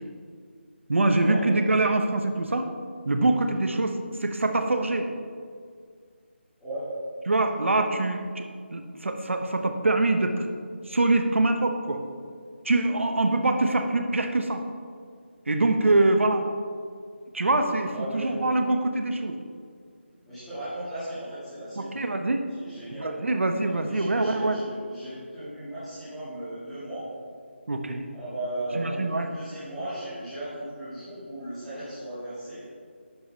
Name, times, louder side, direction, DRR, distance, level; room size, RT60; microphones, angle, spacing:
voice 1, 0.9-2.7 3.0-5.1 7.3-10.5 10.8-12.0 12.6-14.6 15.5-16.4 17.3-19.4 21.8-22.5 23.0-24.6 27.7-28.1 28.7-29.3, right 2 dB, 85° right, 6 dB, 0.8 m, -24 dB
voice 2, 17.9-18.3 20.2-22.1 22.5-23.1 23.6-27.1 28.1-32.6, right 1 dB, ahead, -18 dB, 1.8 m, -36 dB
11.0 x 6.1 x 2.8 m, 2.1 s
figure-of-eight pair, 180°, 7 cm